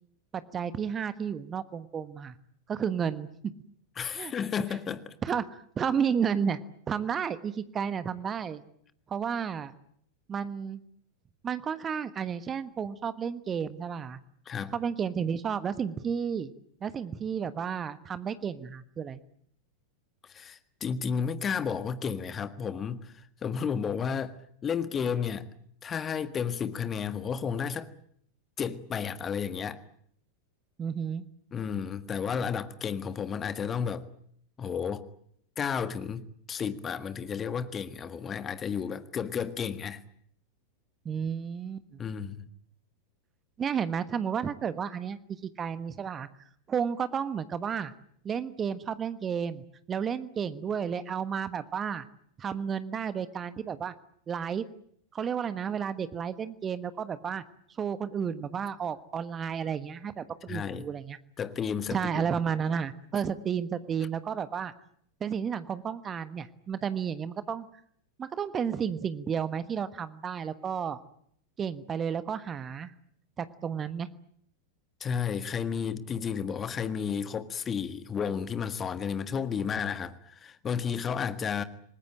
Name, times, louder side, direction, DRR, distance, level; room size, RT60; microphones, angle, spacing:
voice 1, 0.3-2.4 2.7-3.3 4.1-4.3 5.2-6.6 6.9-8.6 9.1-9.7 10.3-10.8 11.4-14.2 14.7-16.5 16.8-19.2 30.8-31.2 41.0-42.0 43.6-45.2 45.6-46.3 46.7-47.9 48.2-52.1 52.4-53.9 54.3-54.7 55.1-57.4 57.8-61.2 61.9-64.7 65.2-67.7 68.2-71.0 71.6-72.9 73.4-74.1, right 7 dB, 25° right, 1.3 m, -32 dB
voice 2, 4.0-5.1 14.4-14.8 20.3-25.5 25.8-27.9 28.6-29.8 31.5-34.1 34.6-35.0 35.6-40.0 42.0-42.5 60.5-60.9 61.4-62.2 75.0-81.6, left 7 dB, 25° left, 1.6 m, -32 dB
28.0 x 20.0 x 8.9 m
figure-of-eight pair, 90°, 0 cm